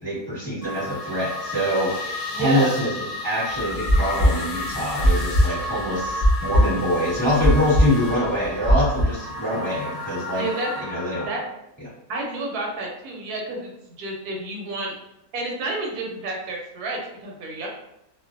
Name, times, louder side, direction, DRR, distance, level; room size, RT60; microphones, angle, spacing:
voice 1, 0.0-2.9 3.2-10.5 10.8-11.3 11.8-11.9, equal, 5° left, -10 dB, 0.9 m, -25 dB
sound 1, 0.6-11.4, left 2 dB, 60° left, 0.9 m, -32 dB
voice 2, 2.3-2.7 10.4-10.7 11.3-11.4 12.1-13.7 14.0-14.9 15.3-17.7, right 2 dB, 80° right, 0 dB, 1.1 m, -30 dB
sound 2, 3.6-6.9 7.1-9.0, equal, 65° right, 0.4 m, -19 dB
2.5 x 2.1 x 2.4 m, 0.84 s
omnidirectional pair, 1.6 m